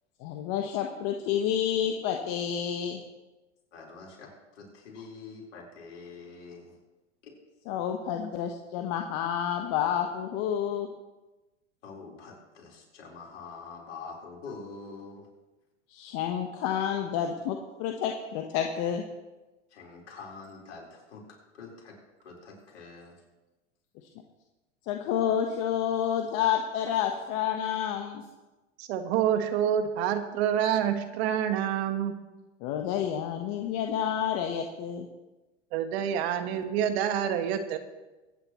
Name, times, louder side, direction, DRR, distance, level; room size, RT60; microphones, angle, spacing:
voice 1, 0.2-3.0 4.9-5.1 7.7-10.9 15.9-19.0 24.9-28.2 32.6-35.1, left 9 dB, 50° left, 3 dB, 1.3 m, -29 dB
voice 2, 3.7-6.8 7.2-7.3 11.8-15.2 19.7-21.9 22.2-23.2, left 4 dB, 75° left, -2 dB, 4.5 m, -45 dB
voice 3, 28.8-32.1 35.7-37.8, right 9 dB, 60° right, 8 dB, 1.5 m, -27 dB
23.5 x 10.0 x 3.1 m, 1.1 s
hypercardioid pair, 95°, 36 cm